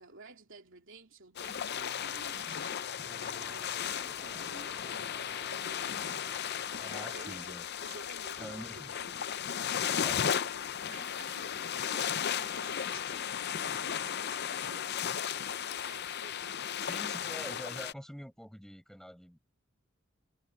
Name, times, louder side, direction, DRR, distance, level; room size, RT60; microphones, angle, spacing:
voice 1, 0.0-4.8 5.2-6.2 6.5-9.7 10.1-15.0 15.3-16.9, right 3 dB, 70° right, 3.2 m, -53 dB
sound 1, 1.4-17.9, left 8 dB, 55° left, 0.6 m, -35 dB
sound 2, 1.7-7.4, right 2 dB, 15° right, 4.5 m, -53 dB
sound 3, 3.4-17.9, left 6 dB, 85° left, 4.2 m, -57 dB
voice 2, 6.8-7.6 8.4-9.0 9.9-10.3 16.8-19.4, equal, ahead, 6.6 m, -45 dB
head